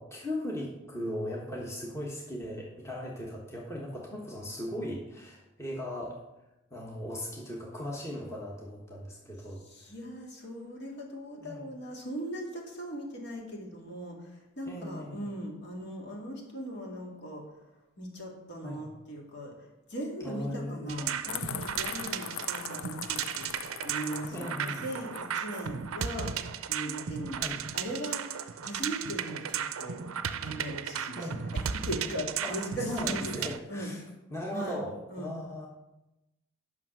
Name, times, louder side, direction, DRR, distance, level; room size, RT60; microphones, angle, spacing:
voice 1, 0.0-6.2 6.7-9.6 11.4-11.6 14.7-15.3 18.6-18.8 20.2-21.1 24.3-24.9 27.3-27.6 31.2-31.4 32.4-32.6 32.9-34.0 34.3-35.7, left 1 dB, 15° left, -3 dB, 1.3 m, -38 dB
voice 2, 9.6-17.5 18.0-30.0 30.4-33.3 33.7-33.9 34.5-34.8 35.1-35.3, equal, 55° left, -1 dB, 2.3 m, -39 dB
sound 1, 20.9-33.6, right 8 dB, 90° right, 0.5 m, -35 dB
sound 2, 21.3-25.7, left 9 dB, 80° left, 0.4 m, -41 dB
9.2 x 6.0 x 6.1 m, 0.96 s
head